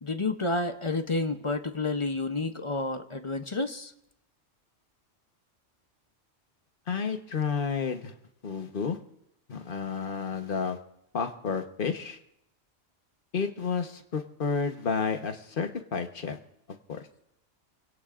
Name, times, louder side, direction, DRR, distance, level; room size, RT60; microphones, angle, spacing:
voice 1, 0.0-3.9, left 2 dB, 30° left, 7 dB, 0.7 m, -30 dB
voice 2, 6.9-8.1 8.4-9.0 9.5-10.8 11.1-12.2 13.3-16.4 16.9-17.0, left 5 dB, 45° left, 6 dB, 1.2 m, -31 dB
27.0 x 17.0 x 2.5 m, 0.79 s
omnidirectional pair, 1.3 m